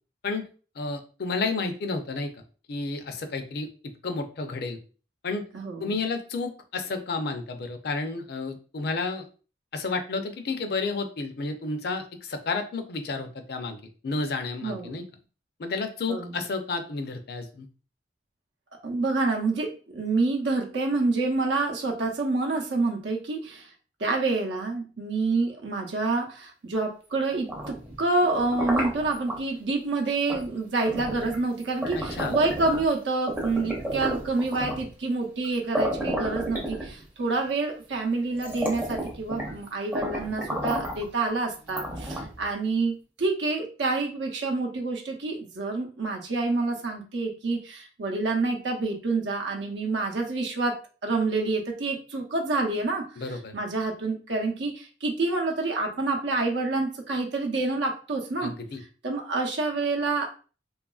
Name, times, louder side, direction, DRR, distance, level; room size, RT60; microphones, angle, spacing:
voice 1, 0.8-2.4 2.7-4.8 5.2-5.4 5.8-9.3 9.7-13.8 14.0-15.0 15.6-17.7 32.0-32.4 53.2-53.5 58.4-58.8, left 3 dB, 60° left, 6 dB, 0.4 m, -31 dB
voice 2, 5.5-5.9 14.6-15.0 16.1-16.3 18.8-23.7 24.0-50.8 51.0-53.1 53.5-58.5 59.0-60.3, right 3 dB, 85° right, 1 dB, 0.6 m, -27 dB
sound 1, 27.3-29.4 30.3-30.5 30.9-32.9 33.3-34.9 35.4-35.5 35.7-37.2 37.9-38.0 38.3-39.6 39.9-41.1 41.7-42.5, equal, 10° right, 0.5 m, -32 dB
2.9 x 2.4 x 2.3 m, 0.37 s
head